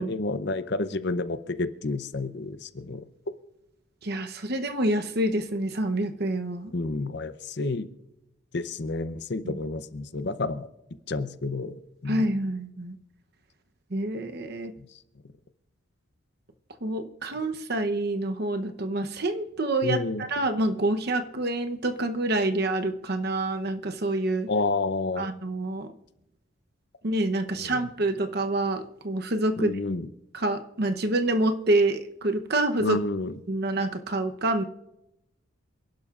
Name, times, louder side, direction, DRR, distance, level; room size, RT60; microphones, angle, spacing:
voice 1, 0.0-3.0 6.7-7.9 8.5-10.7 11.1-12.3 14.8-14.9 19.8-20.2 24.5-25.3 27.6-27.8 29.6-30.1 32.8-33.4, left 3 dB, 55° left, 12 dB, 0.7 m, -30 dB
voice 2, 4.0-6.7 12.1-13.0 13.9-14.7 16.8-20.0 20.3-24.5 25.2-25.9 27.0-29.7 30.3-33.0 33.5-34.6, right 2 dB, 50° right, 7 dB, 0.9 m, -27 dB
28.0 x 11.5 x 2.5 m, 0.88 s
head